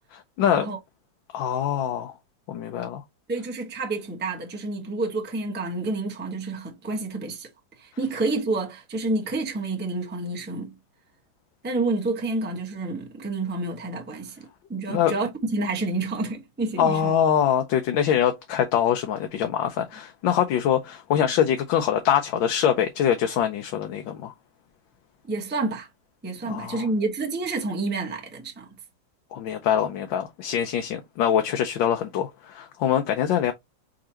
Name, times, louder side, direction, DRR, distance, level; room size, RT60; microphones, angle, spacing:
voice 1, 0.1-0.7 1.3-2.1 2.5-3.0 14.9-15.1 16.8-24.3 26.5-26.9 29.3-33.5, left 9 dB, 80° left, 1.4 m, -24 dB
voice 2, 3.3-7.5 7.8-10.7 11.6-17.1 25.2-25.9 26.2-28.7, right 3 dB, 10° right, 0.6 m, -29 dB
4.9 x 3.6 x 2.9 m
omnidirectional pair, 2.1 m